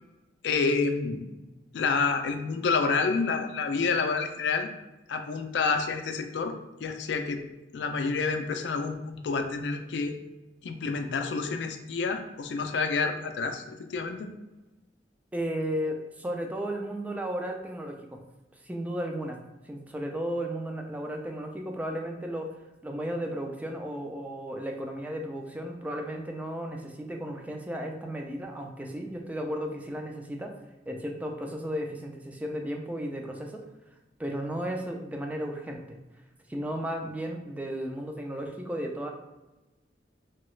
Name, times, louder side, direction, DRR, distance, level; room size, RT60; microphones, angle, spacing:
voice 1, 0.4-1.3 1.7-4.7 5.1-6.5 6.8-7.4 7.7-10.1 10.6-14.3, left 4 dB, 80° left, 7 dB, 0.4 m, -28 dB
voice 2, 15.3-18.0 18.6-19.4 19.6-30.5 30.9-33.6 34.2-36.0 36.5-39.1, equal, 10° right, 2 dB, 0.3 m, -34 dB
2.9 x 2.3 x 3.1 m, 1.1 s
head